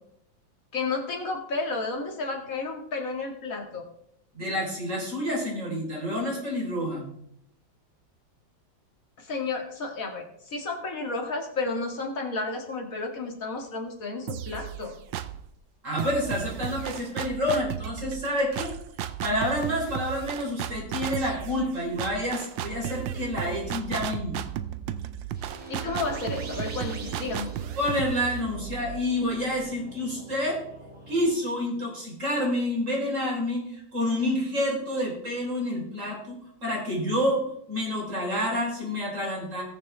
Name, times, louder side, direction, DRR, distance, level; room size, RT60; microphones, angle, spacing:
voice 1, 0.7-3.8 9.2-14.9 25.7-27.5, left 3 dB, 45° left, 1 dB, 2.3 m, -32 dB
voice 2, 4.3-7.0 15.8-18.7 19.2-24.4 27.8-30.6 31.1-39.6, left 1 dB, 40° right, -2 dB, 4.0 m, -28 dB
sound 1, 14.3-15.5 16.0-29.7, right 10 dB, 80° right, 1.3 m, -35 dB
sound 2, 25.4-31.3, right 2 dB, 5° right, 2.0 m, -43 dB
19.5 x 7.0 x 3.3 m, 0.73 s
omnidirectional pair, 2.1 m